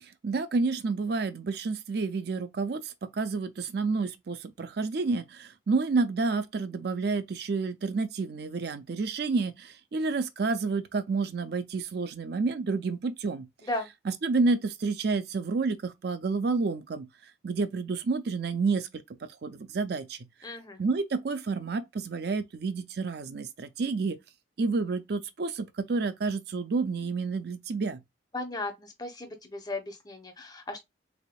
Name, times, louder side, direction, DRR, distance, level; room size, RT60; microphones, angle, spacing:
voice 1, 0.0-13.5 14.1-17.1 17.4-18.9 19.2-20.3 20.8-24.2 24.6-28.0, right 4 dB, 55° right, 0.4 m, -29 dB
voice 2, 20.4-20.8 28.3-30.8, left 2 dB, 20° left, 0.7 m, -36 dB
3.5 x 3.5 x 2.2 m
head